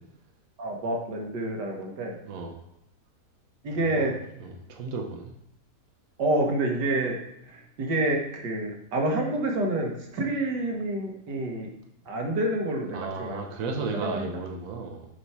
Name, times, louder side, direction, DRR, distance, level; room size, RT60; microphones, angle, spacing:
voice 1, 0.6-2.2 3.6-4.1 6.2-7.2 7.5-11.7 12.1-13.4 14.0-14.3, right 1 dB, 80° right, 1 dB, 1.9 m, -28 dB
voice 2, 2.3-2.6 3.7-4.1 4.4-5.3 12.9-15.1, right 4 dB, 55° right, 1 dB, 1.3 m, -34 dB
7.1 x 5.6 x 4.7 m, 0.81 s
omnidirectional pair, 1.8 m